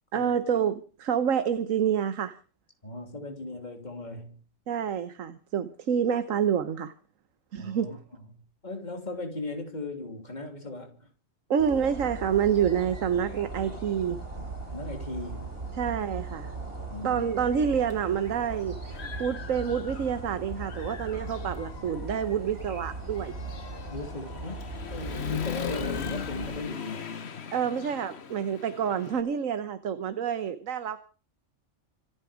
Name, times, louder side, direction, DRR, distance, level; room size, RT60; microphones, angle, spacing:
voice 1, 0.1-2.4 4.7-6.9 7.5-7.9 11.5-14.2 15.8-16.5 17.0-18.8 19.2-23.3 27.5-31.0, right 8 dB, 85° right, 1.4 m, -28 dB
voice 2, 2.8-4.4 7.6-11.1 14.7-15.5 16.9-17.2 23.9-24.6 24.9-27.1, left 2 dB, 35° left, 3.2 m, -38 dB
sound 1, 11.6-26.6, right 2 dB, 45° right, 5.3 m, -39 dB
Human voice / Motorcycle, 17.9-18.0 18.5-20.3 20.6-29.2, left 7 dB, 55° left, 1.3 m, -38 dB
26.0 x 9.7 x 5.1 m
omnidirectional pair, 1.3 m